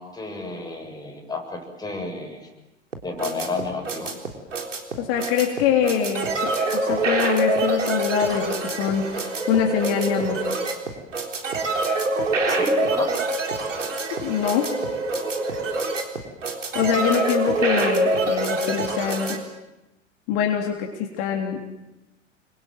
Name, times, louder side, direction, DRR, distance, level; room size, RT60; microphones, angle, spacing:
voice 1, 0.0-2.5 3.0-4.1 12.5-13.1, left 3 dB, 10° left, 2 dB, 7.5 m, -31 dB
sound 1, 2.9-19.4, right 2 dB, 80° right, 3.9 m, -25 dB
voice 2, 5.0-10.5 14.2-14.7 16.7-19.4 20.3-21.6, left 8 dB, 50° left, 2 dB, 3.5 m, -24 dB
29.5 x 24.0 x 7.8 m, 0.97 s
figure-of-eight pair, 90°, 37 cm